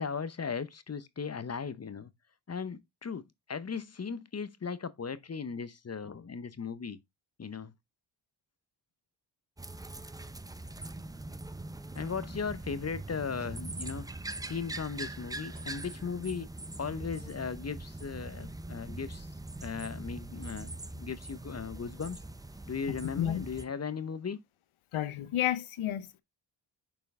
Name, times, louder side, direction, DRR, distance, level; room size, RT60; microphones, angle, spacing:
voice 1, 0.0-2.1 2.5-3.2 3.5-7.0 7.4-7.7 12.0-14.1 14.4-16.5 16.8-19.3 19.6-22.2 22.7-24.4, left 5 dB, 30° left, 0.7 m, -37 dB
sound 1, 9.6-23.6, right 2 dB, 10° right, 0.4 m, -42 dB
sound 2, 13.3-13.6 15.5-15.8 16.0-16.3 16.9-17.0, right 4 dB, 60° right, 3.4 m, -55 dB
voice 2, 22.9-23.4 24.9-26.2, left 12 dB, 80° left, 0.8 m, -32 dB
6.8 x 4.4 x 3.5 m
cardioid pair, 65°, 49 cm